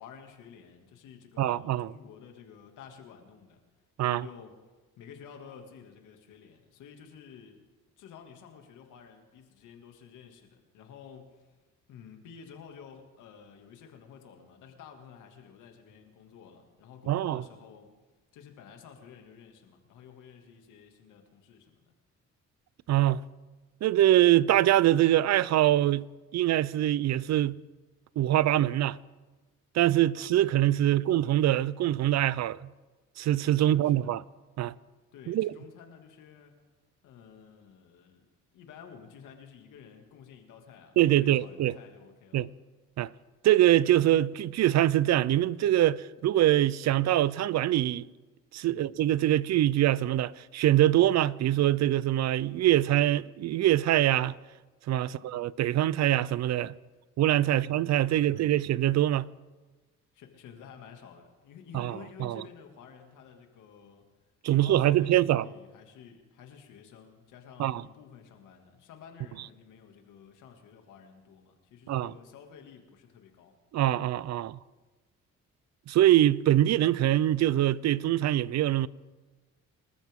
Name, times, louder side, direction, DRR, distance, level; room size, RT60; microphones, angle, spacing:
voice 1, 0.0-3.6 4.0-4.6 5.0-7.6 8.0-11.6 11.9-17.9 18.3-21.9 30.8-31.0 33.6-34.1 35.1-36.6 37.0-38.3 38.5-42.4 48.6-49.0 55.0-55.3 57.5-57.7 58.1-58.6 60.1-64.0 64.5-73.5, left 7 dB, 90° left, 2.3 m, -51 dB
voice 2, 1.4-1.9 4.0-4.3 17.1-17.4 22.9-23.2 23.8-26.1 26.3-27.6 28.2-29.0 29.7-32.7 33.2-34.2 34.6-34.7 35.3-35.5 41.0-41.7 42.3-42.5 43.0-43.1 43.4-48.1 48.5-54.4 54.9-56.7 57.2-59.3 61.7-62.4 64.4-65.5 67.6-67.8 71.9-72.1 73.7-74.6 75.9-78.9, right 13 dB, 60° right, 0.6 m, -24 dB
26.5 x 13.5 x 3.7 m
cardioid pair, 90°, 30 cm